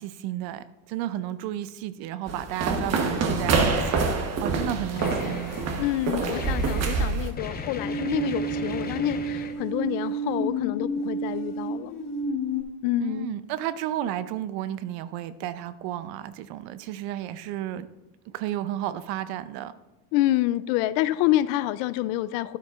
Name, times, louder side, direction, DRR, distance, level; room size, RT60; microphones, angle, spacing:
voice 1, 0.0-4.1 4.4-5.6 13.0-17.9 18.3-19.8, right 12 dB, 55° right, 15 dB, 0.6 m, -32 dB
sound 1, 2.3-7.3, right 4 dB, 35° right, 1.1 m, -26 dB
sound 2, 3.7-4.3 4.9-5.8 6.3-9.5, left 4 dB, 20° left, 0.8 m, -37 dB
voice 2, 5.8-12.0 12.8-13.3 20.1-22.6, left 15 dB, 60° left, 17 dB, 0.5 m, -27 dB
sound 3, 7.7-12.6, right 2 dB, 45° left, 1.4 m, -30 dB
12.5 x 9.7 x 2.4 m, 0.99 s
supercardioid pair, 130°, 46 cm